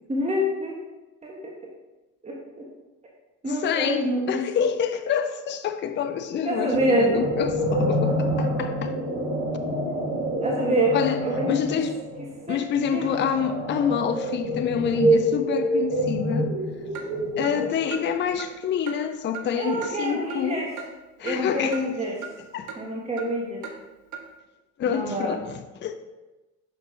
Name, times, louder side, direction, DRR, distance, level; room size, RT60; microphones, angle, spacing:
voice 1, 0.1-0.8 1.2-1.5 2.2-2.7 3.4-4.4 6.4-7.2 10.4-11.8 12.5-12.6 12.9-13.2 17.4-17.7 19.5-20.7 21.2-22.3 22.8-23.6 24.8-25.4, equal, 15° right, 1.2 m, -26 dB
voice 2, 3.6-9.0 10.9-11.9 12.5-16.5 17.4-20.6 21.2-21.8 22.5-22.8 24.8-26.0, left 8 dB, 30° left, 0.5 m, -27 dB
sound 1, 6.7-18.1, right 1 dB, 80° right, 1.6 m, -27 dB
Clock, 16.9-17.1 17.4-17.5 17.9-18.0 18.4-18.5 18.9-19.0 19.3-19.5 19.8-19.9 20.3-20.4 20.8-20.9 21.3-21.4 21.7-21.8 22.2-22.3 22.7-22.8 23.2-23.3 23.6-23.8 24.1-24.2, right 7 dB, 50° right, 0.9 m, -37 dB
6.0 x 5.9 x 2.7 m
hypercardioid pair, 60°, 38 cm